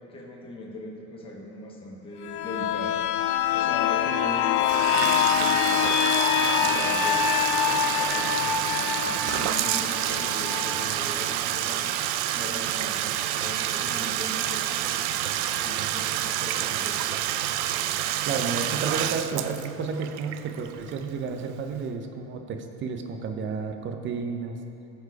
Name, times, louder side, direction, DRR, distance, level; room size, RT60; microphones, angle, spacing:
voice 1, 0.0-2.9 3.5-6.0 6.3-11.8 12.3-13.0 13.4-15.1 15.5-17.0, left 1 dB, 15° left, -3 dB, 1.3 m, -40 dB
sound 1, 2.2-11.8 12.2-12.3, left 9 dB, 60° left, 0.5 m, -25 dB
Bathtub (filling or washing), 4.6-21.3, right 12 dB, 90° right, 0.5 m, -28 dB
voice 2, 18.2-24.6, right 5 dB, 35° right, 5 dB, 0.7 m, -31 dB
13.5 x 4.6 x 4.8 m, 2.7 s
supercardioid pair, 130°, 33 cm